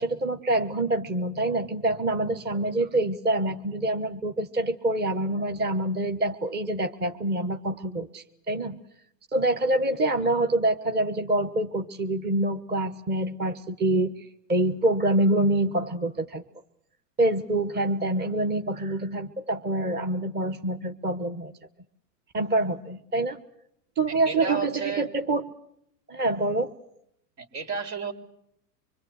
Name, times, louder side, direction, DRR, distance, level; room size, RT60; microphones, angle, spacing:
voice 1, 0.0-8.8 9.3-14.1 14.5-16.4 17.2-21.5 22.3-23.4 24.0-25.5 26.1-26.7, right 1 dB, 20° right, 8 dB, 1.2 m, -26 dB
voice 2, 24.1-25.1 27.4-28.1, right 5 dB, 65° right, 7 dB, 4.3 m, -32 dB
25.5 x 22.0 x 8.0 m, 0.74 s
hypercardioid pair, 110°, 50 cm